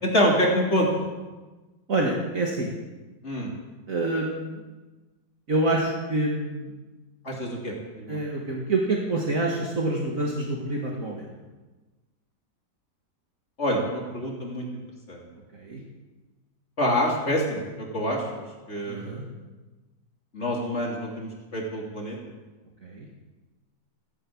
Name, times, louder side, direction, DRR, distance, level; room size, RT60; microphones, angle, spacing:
voice 1, 0.0-0.9 3.2-3.5 7.2-8.2 13.6-14.8 15.1-15.2 16.8-19.1 20.3-22.2, equal, 40° left, -2 dB, 3.2 m, -26 dB
voice 2, 1.9-2.7 3.9-4.6 5.5-6.7 8.1-11.3 15.5-15.8 18.9-19.2 22.8-23.1, right 2 dB, 50° right, -2 dB, 2.2 m, -27 dB
15.5 x 10.5 x 8.6 m, 1.2 s
omnidirectional pair, 1.9 m